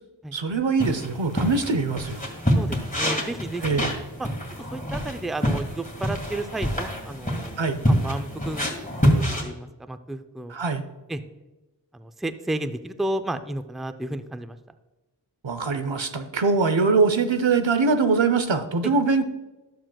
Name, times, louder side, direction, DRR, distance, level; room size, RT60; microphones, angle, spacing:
voice 1, 0.3-2.3 3.6-3.9 7.6-7.8 10.5-10.8 15.4-19.2, right 4 dB, 85° right, 9 dB, 0.8 m, -22 dB
sound 1, 0.8-9.4, equal, 20° left, 2.0 m, -26 dB
voice 2, 2.5-3.8 4.2-4.3 4.7-8.7 9.2-10.6 11.1-11.2 11.9-14.6 18.8-18.9, right 1 dB, ahead, 10 dB, 0.4 m, -32 dB
12.0 x 7.5 x 2.3 m, 1.1 s
wide cardioid pair, 50°, 44 cm